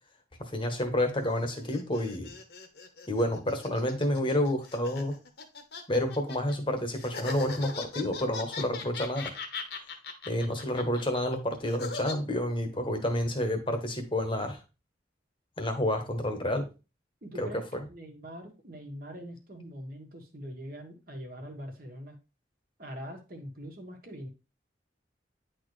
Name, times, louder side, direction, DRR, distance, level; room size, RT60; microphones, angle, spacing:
voice 1, 0.4-2.4 3.1-5.2 5.9-9.3 10.3-14.6 15.6-16.7 17.4-17.5, left 1 dB, 30° left, 5 dB, 1.1 m, -29 dB
sound 1, 1.2-6.5 6.9-12.1, left 4 dB, 60° left, 1.1 m, -40 dB
voice 2, 17.2-17.6 17.9-22.1 22.8-24.3, equal, 50° right, 3 dB, 1.5 m, -43 dB
9.6 x 4.1 x 3.2 m, 0.30 s
head